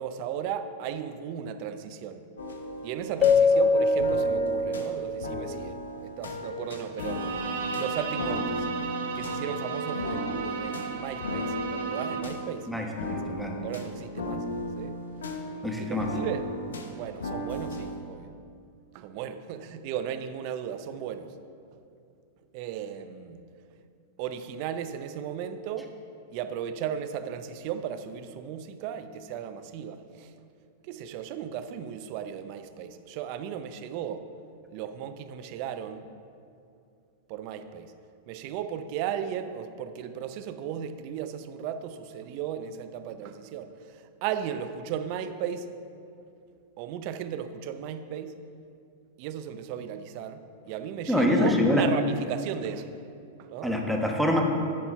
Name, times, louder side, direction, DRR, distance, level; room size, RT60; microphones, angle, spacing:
voice 1, 0.0-2.3 2.8-7.3 7.7-8.7 9.1-12.7 13.1-13.2 13.6-14.4 14.8-14.9 15.7-16.5 16.9-18.3 18.9-21.4 22.5-23.4 24.2-25.9 26.3-30.3 30.8-34.2 34.7-36.1 37.3-37.9 38.3-45.7 46.8-48.3 49.2-53.0 53.4-53.7, right 9 dB, 50° right, 0.5 m, -35 dB
sound 1, 2.4-18.0, left 1 dB, 85° left, 0.9 m, -36 dB
Keyboard (musical), 3.2-5.7, left 3 dB, 35° left, 0.5 m, -23 dB
Bowed string instrument, 7.0-12.4, right 4 dB, 75° right, 1.1 m, -34 dB
voice 2, 12.7-13.5 15.6-16.1 51.1-51.9 53.6-54.4, left 1 dB, ahead, 1.1 m, -25 dB
10.5 x 4.4 x 5.7 m
hypercardioid pair, 110°, 0 cm